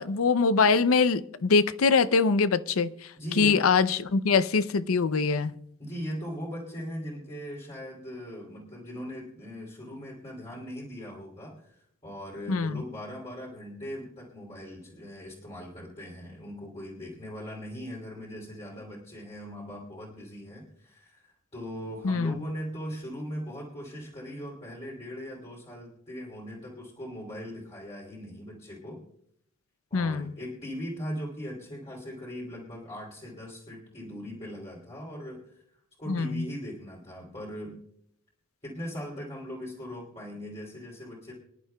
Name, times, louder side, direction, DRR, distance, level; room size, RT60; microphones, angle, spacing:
voice 1, 0.0-2.9 3.4-5.6 12.5-12.8 22.0-22.3 29.9-30.3 36.1-36.4, left 4 dB, 85° left, 0.6 m, -23 dB
voice 2, 3.2-3.6 5.8-29.0 29.9-35.6 36.0-37.8 38.6-41.3, equal, 30° left, 3.0 m, -39 dB
26.0 x 11.0 x 2.3 m
head